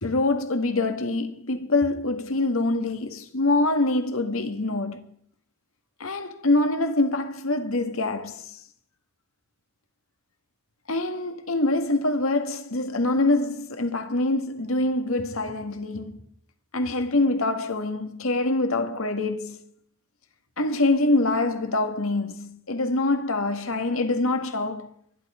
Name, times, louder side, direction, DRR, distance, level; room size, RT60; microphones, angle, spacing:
voice 1, 0.0-5.0 6.0-8.6 10.9-16.3 16.7-19.6 20.6-24.9, left 2 dB, 75° left, 1.9 m, -25 dB
24.5 x 11.5 x 5.1 m
head